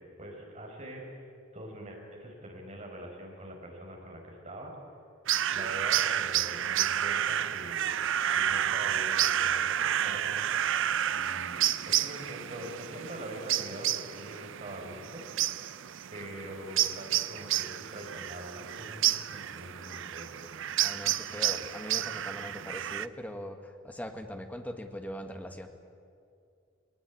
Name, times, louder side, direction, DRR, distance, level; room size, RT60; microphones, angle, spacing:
voice 1, 0.0-4.7 5.5-8.0 8.3-10.5 11.1-15.2 16.1-20.3, equal, 35° right, 0 dB, 5.2 m, -44 dB
sound 1, 5.3-23.1, right 11 dB, 65° right, 0.5 m, -30 dB
voice 2, 20.8-25.7, equal, 10° left, 5 dB, 1.6 m, -41 dB
20.5 x 19.5 x 9.6 m, 2.4 s
head